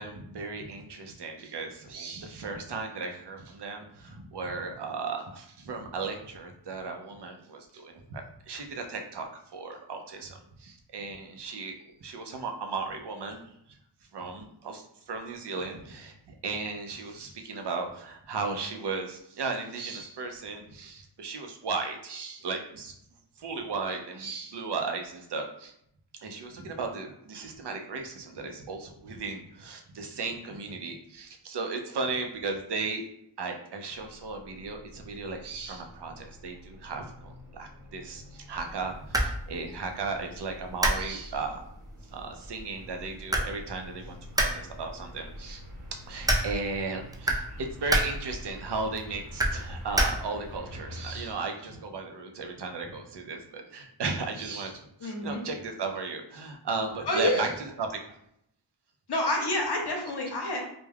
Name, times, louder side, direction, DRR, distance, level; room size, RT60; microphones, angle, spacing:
voice 1, 0.0-11.8 12.0-13.4 14.1-22.9 23.4-25.7 26.2-33.0 33.4-41.6 42.1-45.6 45.9-57.9, right 4 dB, 60° right, 4 dB, 0.5 m, -36 dB
sound 1, 34.0-51.4, left 1 dB, 80° right, 0.9 m, -48 dB
sound 2, 38.6-50.6, right 1 dB, 10° right, 0.3 m, -32 dB
voice 2, 55.0-55.4 57.1-57.5 59.1-60.6, left 1 dB, 55° left, 1 dB, 0.7 m, -28 dB
2.3 x 2.2 x 3.2 m, 0.74 s
wide cardioid pair, 50°, 48 cm